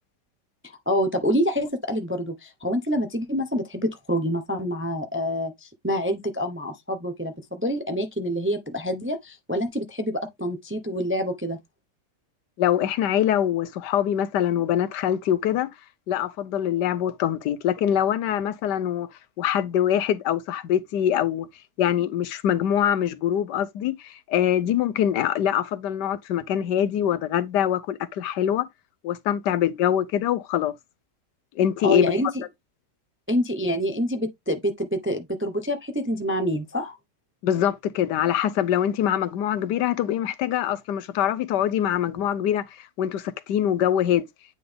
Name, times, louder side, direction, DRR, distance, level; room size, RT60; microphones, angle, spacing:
voice 1, 0.9-11.6 31.8-32.4 33.3-37.0, equal, 15° right, 0.5 m, -27 dB
voice 2, 12.6-15.7 16.1-19.1 19.4-21.5 21.8-28.7 29.0-30.7 31.6-32.1 37.4-44.2, left 10 dB, 80° left, 1.3 m, -24 dB
9.2 x 3.8 x 3.4 m
omnidirectional pair, 1.8 m